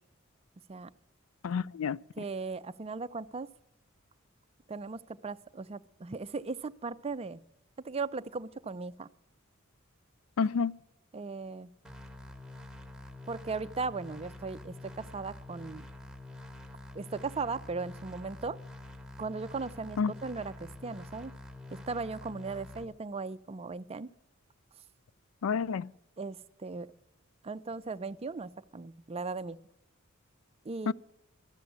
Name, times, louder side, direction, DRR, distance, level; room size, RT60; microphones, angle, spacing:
voice 1, 1.4-2.0 10.4-10.8 20.0-20.1 25.4-25.9 30.9-31.0, left 6 dB, 75° left, 0.4 m, -29 dB
voice 2, 2.2-3.5 4.7-7.4 7.8-9.1 11.1-11.7 13.3-15.9 16.9-18.6 19.2-21.3 21.7-24.1 26.2-26.9 27.4-29.6 30.6-30.9, right 4 dB, 30° right, 0.4 m, -37 dB
sound 1, 11.8-22.8, left 2 dB, ahead, 1.1 m, -47 dB
13.5 x 7.4 x 9.3 m
head